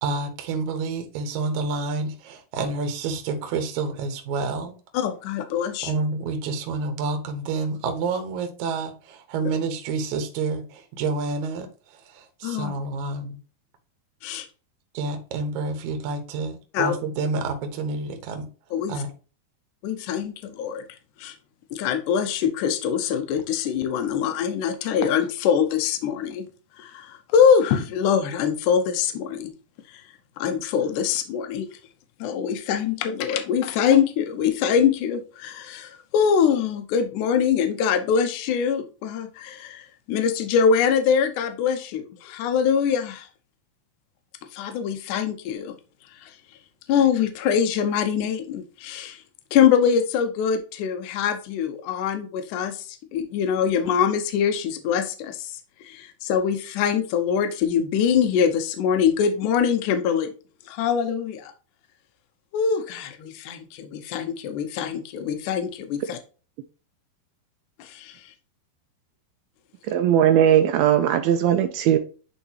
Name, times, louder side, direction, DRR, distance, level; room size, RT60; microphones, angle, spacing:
voice 1, 0.0-4.7 5.8-13.4 14.9-18.5 18.9-19.1, right 3 dB, 65° right, 2.2 m, -29 dB
voice 2, 4.9-5.9 9.4-9.5 12.4-12.7 14.2-14.5 16.7-16.9 18.7-18.9 19.8-20.8 21.2-21.4 21.7-26.5 26.8-29.5 29.9-30.0 30.4-31.7 32.2-43.3 44.5-45.8 46.1-46.4 46.9-49.2 49.5-60.3 60.7-61.5 62.5-66.2 67.8-68.3, left 7 dB, 85° left, 1.8 m, -23 dB
voice 3, 69.9-72.0, right 10 dB, 85° right, 2.4 m, -19 dB
10.0 x 3.8 x 2.9 m
omnidirectional pair, 4.5 m